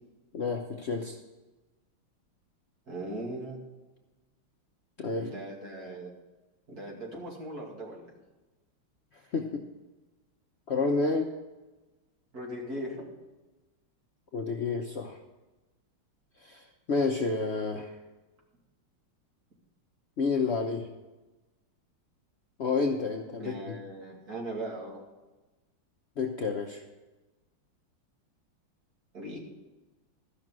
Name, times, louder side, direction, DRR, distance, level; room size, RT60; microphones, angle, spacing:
voice 1, 0.3-1.2 5.0-5.3 9.3-9.6 10.7-11.3 14.3-15.2 16.4-17.9 20.2-20.9 22.6-23.8 26.2-26.8, left 4 dB, 90° left, 2 dB, 0.5 m, -30 dB
voice 2, 2.9-3.6 5.2-6.1 6.7-8.1 12.3-13.0 23.4-25.0 29.1-29.4, right 1 dB, 45° right, -2 dB, 2.8 m, -39 dB
13.5 x 6.0 x 7.4 m, 1.1 s
omnidirectional pair, 2.3 m